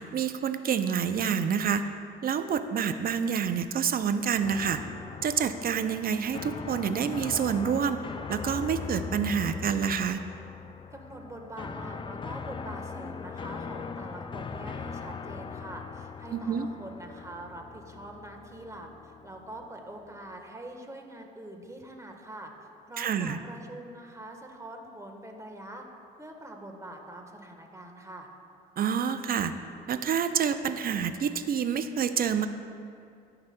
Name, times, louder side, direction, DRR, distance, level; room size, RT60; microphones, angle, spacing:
voice 1, 0.0-1.9 2.2-4.8 5.2-8.0 8.3-10.2 16.3-16.7 23.0-23.4 28.8-29.5 29.9-32.5, right 7 dB, 45° right, 10 dB, 0.5 m, -28 dB
sound 1, 4.4-20.3, left 5 dB, 25° left, 0.4 m, -40 dB
voice 2, 10.9-22.5 22.9-25.8 26.2-28.3, right 1 dB, 15° right, 3 dB, 1.2 m, -44 dB
13.5 x 5.9 x 2.2 m, 2.4 s
supercardioid pair, 65°, 21 cm